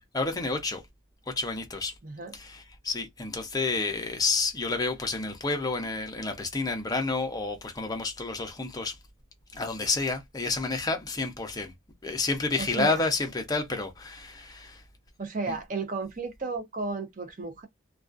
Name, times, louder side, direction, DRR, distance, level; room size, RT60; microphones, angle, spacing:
voice 1, 0.1-0.8 1.3-1.9 2.3-9.0 9.5-11.7 12.0-14.8 15.5-15.6, left 3 dB, 20° left, 0.5 m, -30 dB
voice 2, 2.0-2.3 12.6-13.0 15.2-17.7, right 3 dB, 40° right, 0.5 m, -33 dB
2.3 x 2.3 x 2.3 m
head